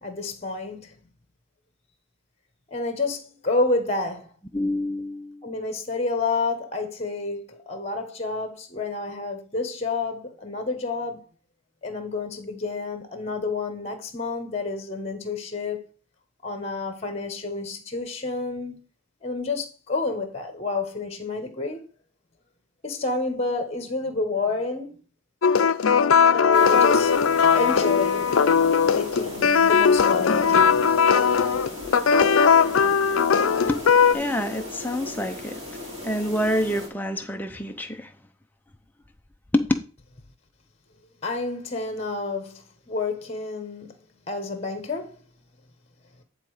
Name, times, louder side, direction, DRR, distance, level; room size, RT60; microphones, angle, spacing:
voice 1, 0.0-0.9 2.7-4.3 5.4-11.2 11.8-15.9 16.4-18.8 19.2-21.8 22.8-25.0 26.3-27.1 27.6-30.8 41.2-43.9 44.3-45.2, left 3 dB, 30° left, 1.3 m, -29 dB
voice 2, 4.5-5.4 33.7-33.8 34.1-35.6 36.0-38.1 39.5-39.6, left 1 dB, 10° left, 0.7 m, -27 dB
sound 1, 25.4-34.1, left 6 dB, 80° left, 0.5 m, -19 dB
sound 2, 26.5-36.9, left 1 dB, 30° right, 2.6 m, -37 dB
10.0 x 4.0 x 4.9 m
head